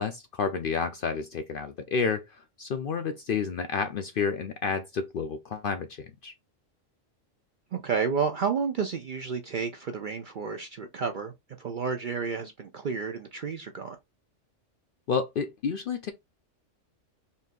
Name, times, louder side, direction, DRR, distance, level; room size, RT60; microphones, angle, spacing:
voice 1, 0.0-6.3 15.1-16.1, left 5 dB, 65° left, 0.5 m, -30 dB
voice 2, 7.7-11.3 11.6-14.0, right 5 dB, 60° right, 0.5 m, -31 dB
4.1 x 2.7 x 3.6 m
omnidirectional pair, 1.3 m